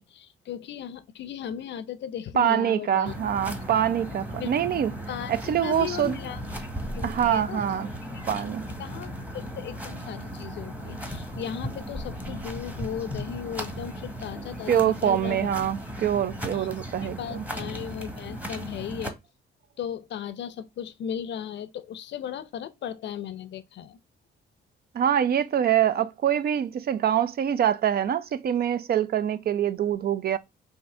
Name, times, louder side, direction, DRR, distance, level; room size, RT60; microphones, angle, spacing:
voice 1, 0.0-3.1 4.4-4.5 5.1-5.3 5.6-6.4 6.9-7.7 8.8-15.5 16.5-16.7 17.0-19.1 19.8-24.0, left 9 dB, 65° left, 0.6 m, -36 dB
voice 2, 2.3-4.9 5.5-6.2 7.0-7.9 8.3-8.6 14.7-17.4 24.9-30.4, right 9 dB, 50° right, 0.5 m, -25 dB
sound 1, 3.1-19.1, equal, 10° right, 1.1 m, -36 dB
3.7 x 2.7 x 4.3 m
cardioid pair, 90°, 20 cm